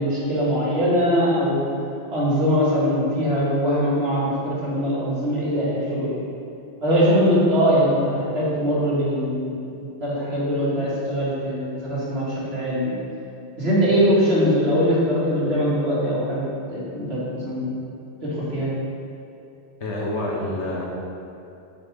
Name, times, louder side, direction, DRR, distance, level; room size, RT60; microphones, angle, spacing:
voice 1, 0.0-1.7 2.1-6.2 6.8-13.0 13.6-16.4 16.7-17.8 18.2-18.7, equal, 60° right, -8 dB, 2.5 m, -22 dB
voice 2, 19.8-20.8, left 1 dB, 75° left, -3 dB, 1.7 m, -27 dB
8.3 x 7.1 x 3.7 m, 2.8 s
omnidirectional pair, 1.2 m